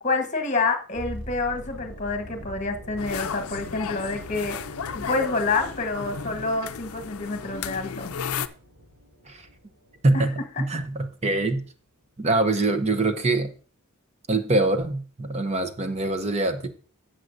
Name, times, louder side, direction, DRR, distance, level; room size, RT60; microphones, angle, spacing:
voice 1, 0.0-4.6 4.9-8.1 10.1-10.2, left 3 dB, 35° left, 6 dB, 1.2 m, -27 dB
sound 1, 0.9-10.9 11.2-11.4, equal, 70° right, 3.4 m, -44 dB
sound 2, 3.0-8.5, left 7 dB, 70° left, 0.5 m, -34 dB
voice 2, 10.0-11.6 12.2-13.5 14.3-16.7, right 2 dB, 30° right, 8 dB, 0.8 m, -24 dB
12.5 x 7.8 x 2.6 m, 0.39 s
head